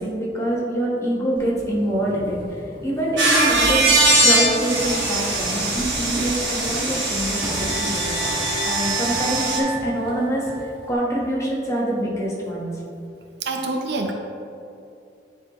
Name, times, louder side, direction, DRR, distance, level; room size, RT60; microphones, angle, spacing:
voice 1, 0.0-3.9 4.2-12.7, right 1 dB, 15° left, -5 dB, 1.1 m, -25 dB
Walk footsteps / Squeak, 1.4-10.9, equal, 30° right, 1.1 m, -37 dB
sound 1, 3.2-9.6, right 2 dB, 85° right, 1.3 m, -21 dB
sound 2, 6.8-11.1, right 1 dB, ahead, 0.7 m, -33 dB
voice 2, 13.4-14.1, right 3 dB, 65° right, 3 dB, 0.6 m, -26 dB
9.6 x 3.8 x 3.0 m, 2.6 s
head